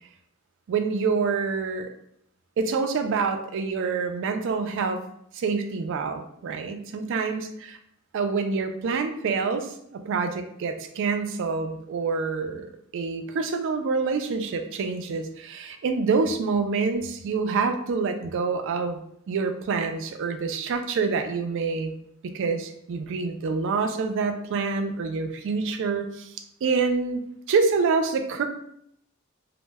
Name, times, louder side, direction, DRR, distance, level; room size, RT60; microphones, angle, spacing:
voice 1, 0.7-1.9 2.6-5.0 5.3-7.7 8.1-21.9 22.3-26.3 26.6-27.2 27.5-28.4, right 4 dB, 60° right, 8 dB, 0.3 m, -27 dB
2.1 x 2.0 x 3.3 m, 0.73 s
head